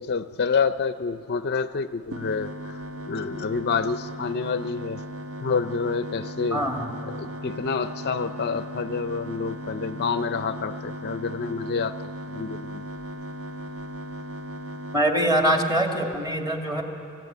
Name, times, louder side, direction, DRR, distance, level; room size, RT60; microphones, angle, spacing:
voice 1, 0.0-2.8 3.1-5.0 5.4-6.6 7.1-12.8, left 5 dB, 50° left, 12 dB, 0.5 m, -28 dB
sound 1, 2.1-15.0, right 1 dB, 70° right, 1.5 m, -37 dB
voice 2, 6.5-6.9 14.9-16.8, right 1 dB, 20° right, 2 dB, 2.2 m, -23 dB
27.0 x 15.5 x 9.2 m, 2.7 s
head